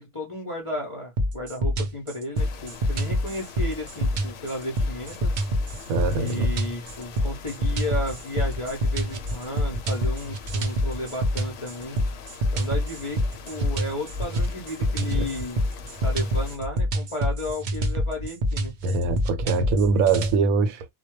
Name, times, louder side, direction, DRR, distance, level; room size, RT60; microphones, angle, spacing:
voice 1, 0.0-5.4 6.1-12.0 12.5-15.7 16.0-18.7, left 1 dB, 40° left, 0.5 m, -33 dB
sound 1, 1.2-20.4, equal, 70° right, 0.4 m, -26 dB
sound 2, 2.4-16.6, left 6 dB, 70° left, 0.8 m, -44 dB
voice 2, 5.9-6.5 15.2-15.3 18.8-20.8, right 4 dB, 85° right, 1.0 m, -23 dB
2.2 x 2.2 x 3.0 m
omnidirectional pair, 1.4 m